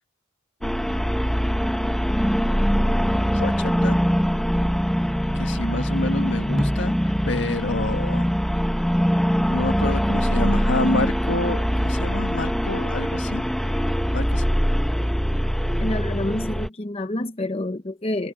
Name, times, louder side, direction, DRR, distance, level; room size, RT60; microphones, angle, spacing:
sound 1, 0.6-16.7, equal, ahead, 1.1 m, -22 dB
voice 1, 3.3-4.0 5.3-8.3 9.5-13.4 14.1-14.5, left 2 dB, 65° left, 1.4 m, -28 dB
voice 2, 15.8-18.3, left 1 dB, 30° left, 0.9 m, -28 dB
head